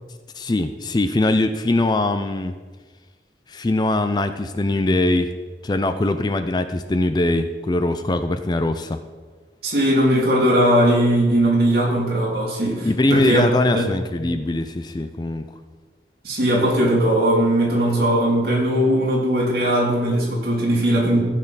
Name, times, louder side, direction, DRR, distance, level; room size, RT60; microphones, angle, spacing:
voice 1, 0.3-2.5 3.5-5.3 5.6-9.0 12.8-15.5, left 2 dB, 25° left, 10 dB, 0.4 m, -22 dB
voice 2, 9.6-13.4 13.7-13.9 16.2-21.2, right 1 dB, 60° right, -3 dB, 2.8 m, -19 dB
15.0 x 6.6 x 4.0 m, 1.4 s
head